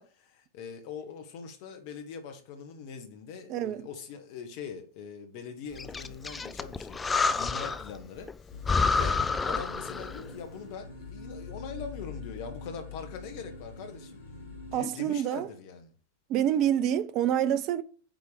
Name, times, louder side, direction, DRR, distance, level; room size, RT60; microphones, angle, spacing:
voice 1, 0.0-8.3 8.7-14.2 14.6-15.9, left 6 dB, 45° left, 1.5 m, -42 dB
voice 2, 3.5-3.9 14.7-15.5 16.3-17.8, right 10 dB, 40° right, 0.6 m, -27 dB
Breathing, 5.8-8.0 8.3-8.4 8.6-10.3, left 4 dB, 15° left, 0.5 m, -29 dB
sound 1, 8.5-14.8, left 4 dB, 65° left, 2.0 m, -44 dB
9.2 x 3.4 x 5.1 m
figure-of-eight pair, 90°, 0 cm